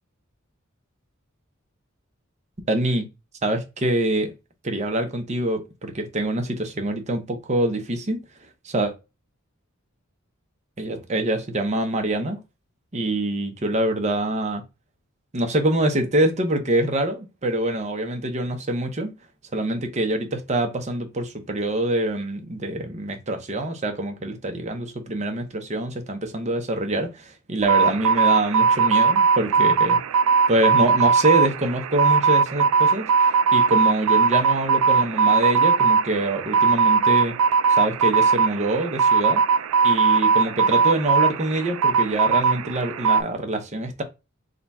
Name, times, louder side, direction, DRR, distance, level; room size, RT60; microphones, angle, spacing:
voice 1, 2.7-3.1 3.4-4.3 4.6-8.2 8.6-8.9 10.8-12.4 12.9-14.6 15.3-19.1 19.5-30.0 30.5-33.1 33.5-37.3 37.8-39.4 39.8-44.0, right 1 dB, 35° right, 0.8 m, -25 dB
sound 1, 27.6-43.2, right 5 dB, 80° right, 0.3 m, -19 dB
3.8 x 2.3 x 4.0 m
head